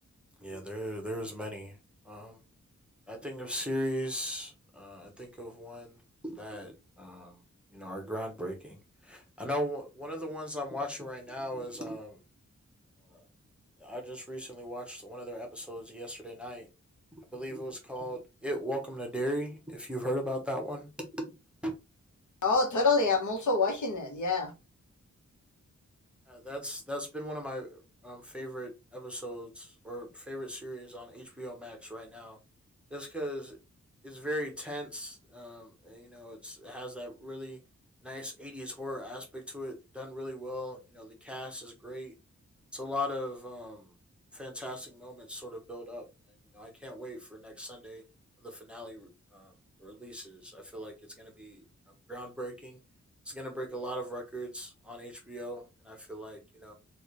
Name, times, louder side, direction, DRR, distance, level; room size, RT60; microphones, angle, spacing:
voice 1, 0.4-1.8 2.0-2.4 3.1-7.4 7.7-12.2 13.1-13.2 13.8-16.7 17.3-20.9 21.1-21.3 21.6-21.7 26.3-32.4 32.9-33.6 34.0-37.6 38.0-42.1 42.7-43.9 44.3-46.0 46.5-48.0 48.4-49.5 49.8-51.6 52.1-52.8 53.2-56.7, equal, 5° right, 0.8 m, -38 dB
voice 2, 22.4-24.5, left 3 dB, 85° left, 1.1 m, -26 dB
4.0 x 2.5 x 3.1 m
wide cardioid pair, 160°, 29 cm